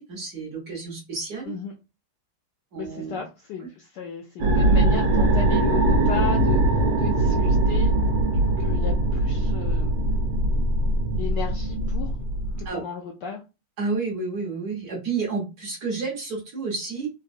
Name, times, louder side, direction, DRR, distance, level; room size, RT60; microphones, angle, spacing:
voice 1, 0.0-1.5 2.7-3.2 12.6-12.8 13.8-17.1, right 4 dB, 55° right, -2 dB, 1.2 m, -30 dB
voice 2, 2.7-6.6 7.0-7.9 8.6-10.0 11.2-12.1 12.6-13.4, left 7 dB, 75° left, 2 dB, 1.0 m, -34 dB
sound 1, 4.4-12.7, right 2 dB, 75° right, 1.5 m, -21 dB
3.9 x 2.1 x 2.5 m, 0.28 s
omnidirectional pair, 2.4 m